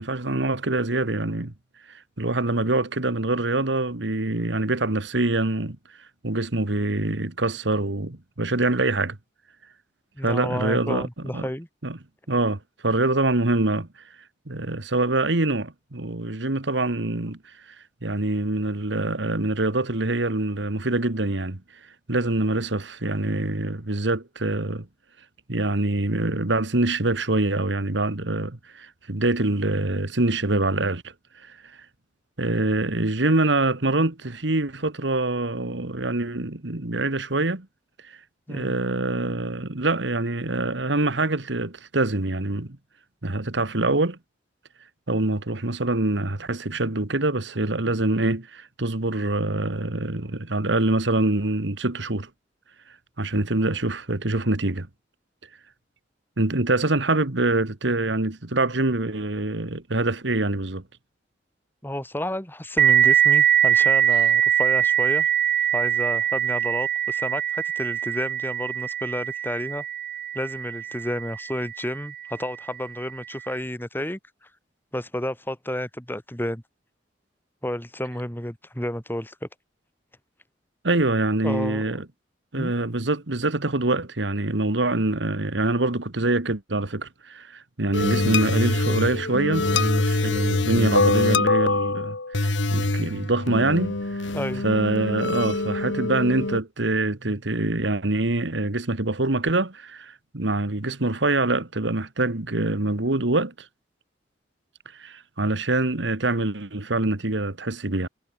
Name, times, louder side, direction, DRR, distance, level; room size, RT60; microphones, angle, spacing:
voice 1, 0.0-1.5 1.9-5.8 6.2-9.2 10.2-11.1 11.3-11.5 11.8-12.0 12.3-13.9 14.5-17.4 18.0-21.6 22.1-24.9 25.5-31.6 32.4-37.7 38.0-38.2 38.5-42.8 43.2-44.2 45.1-52.3 53.2-54.9 56.4-60.8 80.8-82.1 82.5-94.3 94.6-103.7 104.9-108.1, right 2 dB, 70° right, 1.8 m, -25 dB
voice 2, 10.2-11.7 38.5-38.7 61.8-65.3 65.7-69.8 70.3-74.2 74.9-76.6 77.6-79.5 81.4-82.0 82.5-82.7 94.3-94.6, left 1 dB, 10° left, 3.8 m, -31 dB
sound 1, 62.8-72.0, right 10 dB, 50° right, 2.2 m, -22 dB
sound 2, 87.9-96.6, left 2 dB, 90° left, 1.9 m, -24 dB
head